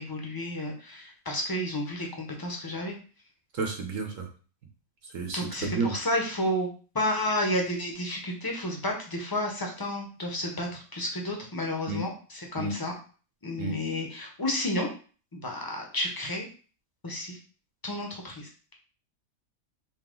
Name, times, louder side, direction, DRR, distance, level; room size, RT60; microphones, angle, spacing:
voice 1, 0.0-3.0 5.3-6.7 6.9-12.9 13.4-14.9 15.3-16.5 17.0-17.4 17.8-18.7, left 1 dB, 20° left, 1 dB, 0.8 m, -31 dB
voice 2, 3.5-4.3 5.1-5.9 11.9-12.0 12.6-12.8 13.6-13.8, right 4 dB, 65° right, 2 dB, 1.2 m, -31 dB
4.6 x 2.9 x 3.8 m, 0.39 s
omnidirectional pair, 1.5 m